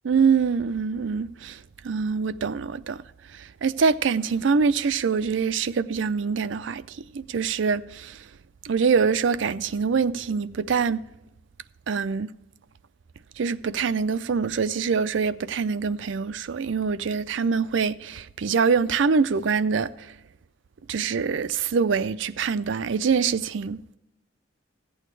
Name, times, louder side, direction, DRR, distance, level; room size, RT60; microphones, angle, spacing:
voice 1, 0.0-3.0 3.3-8.2 8.6-11.0 11.9-12.3 13.4-20.1 20.9-24.0, right 5 dB, 70° right, 0.4 m, -24 dB
15.5 x 8.7 x 3.2 m
head